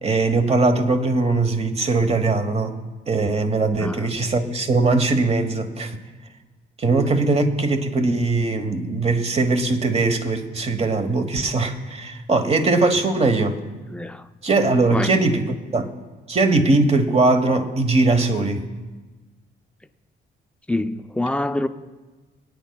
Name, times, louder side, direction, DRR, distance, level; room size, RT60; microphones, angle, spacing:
voice 1, 0.0-2.8 3.1-6.0 6.8-13.6 14.4-15.4 15.7-15.9 16.3-18.6, right 3 dB, 30° right, 1.1 m, -20 dB
voice 2, 13.9-14.3 14.9-15.2 20.7-21.7, left 2 dB, 5° left, 0.5 m, -25 dB
23.5 x 9.3 x 2.3 m
cardioid pair, 90°, 20 cm